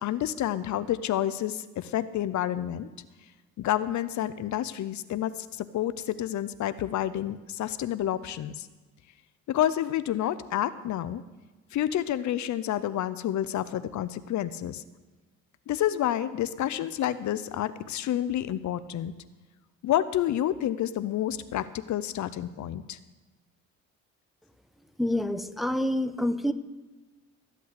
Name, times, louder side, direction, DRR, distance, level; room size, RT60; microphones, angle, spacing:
voice 1, 0.0-2.9 3.6-8.7 9.5-11.2 11.7-14.8 15.7-19.1 19.8-23.0, left 12 dB, 70° left, 14 dB, 0.7 m, -29 dB
voice 2, 25.0-26.5, left 1 dB, ahead, 9 dB, 0.9 m, -27 dB
14.0 x 8.4 x 8.2 m, 1.2 s
cardioid pair, 90°, 30 cm